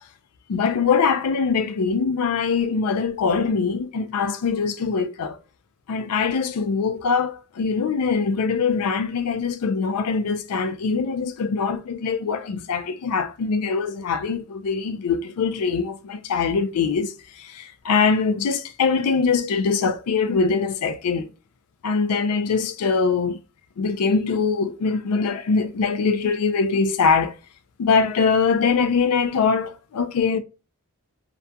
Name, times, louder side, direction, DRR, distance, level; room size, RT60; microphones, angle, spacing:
voice 1, 0.5-5.4 5.9-21.3 21.8-23.4 23.8-27.3 27.8-30.4, left 5 dB, 85° left, 0.4 m, -23 dB
2.4 x 2.2 x 2.6 m
head